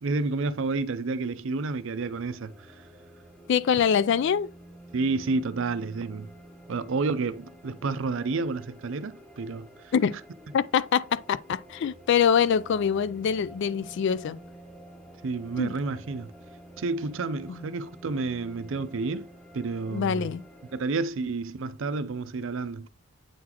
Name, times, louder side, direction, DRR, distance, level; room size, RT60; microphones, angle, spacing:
voice 1, 0.0-2.5 4.9-6.3 6.7-9.7 15.2-16.3 16.8-19.3 19.5-20.3 20.7-22.9, right 3 dB, 60° right, 0.5 m, -30 dB
sound 1, 1.9-20.8, right 1 dB, 5° left, 1.0 m, -50 dB
voice 2, 3.5-4.5 9.9-10.2 10.5-14.4 15.6-15.7 17.5-17.6 19.9-20.4, left 7 dB, 55° left, 0.3 m, -24 dB
8.4 x 3.9 x 2.9 m
head